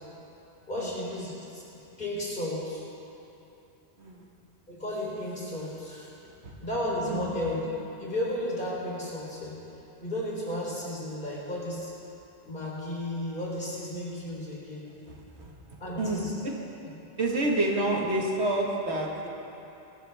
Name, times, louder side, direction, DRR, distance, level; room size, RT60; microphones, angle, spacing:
voice 1, 0.7-1.6 2.0-2.8 4.7-6.1 6.6-7.6 8.0-9.5 10.0-11.9 12.4-14.8 15.8-16.3, left 1 dB, 50° left, -5 dB, 3.9 m, -33 dB
voice 2, 15.1-16.5 17.2-19.3, right 1 dB, 75° right, -1 dB, 2.0 m, -29 dB
21.5 x 14.0 x 3.5 m, 2.9 s
omnidirectional pair, 1.1 m